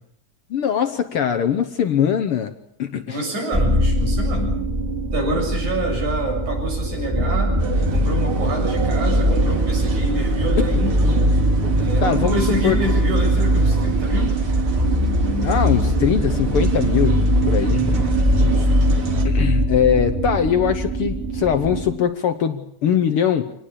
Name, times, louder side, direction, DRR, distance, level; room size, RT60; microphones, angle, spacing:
voice 1, 0.5-2.5 2.8-3.2 12.0-12.4 12.6-12.8 15.4-17.2 17.5-17.8 19.1-23.5, left 8 dB, 60° left, 9 dB, 1.7 m, -21 dB
voice 2, 3.1-4.6 5.1-7.5 7.9-11.2 11.7-14.4 17.7-18.8, right 1 dB, 80° right, 0 dB, 8.9 m, -27 dB
sound 1, 3.5-21.9, right 1 dB, 15° right, 3.1 m, -20 dB
sound 2, 7.6-19.2, right 5 dB, 50° right, 2.8 m, -32 dB
25.5 x 19.0 x 8.6 m, 0.70 s
omnidirectional pair, 3.4 m